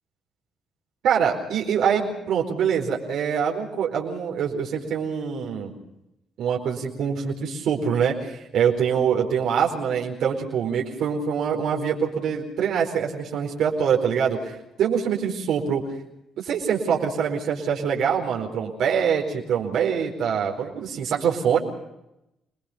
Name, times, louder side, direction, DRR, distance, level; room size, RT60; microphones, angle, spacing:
voice 1, 1.0-5.7 6.4-15.9 16.4-21.6, right 7 dB, 75° right, -1 dB, 4.6 m, -24 dB
28.0 x 20.0 x 5.9 m, 0.86 s
cardioid pair, 90°, 0 cm